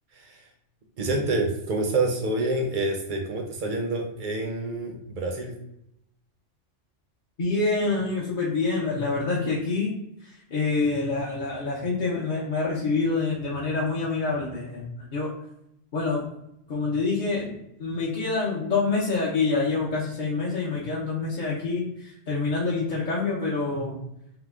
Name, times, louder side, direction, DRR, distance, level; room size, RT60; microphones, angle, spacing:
voice 1, 0.1-0.4 1.0-5.6, right 2 dB, 50° right, 2 dB, 0.6 m, -27 dB
voice 2, 7.4-9.9 10.2-15.3 15.9-16.2 16.7-24.0, left 3 dB, 50° left, -6 dB, 0.7 m, -26 dB
2.9 x 2.1 x 3.4 m, 0.80 s
omnidirectional pair, 1.2 m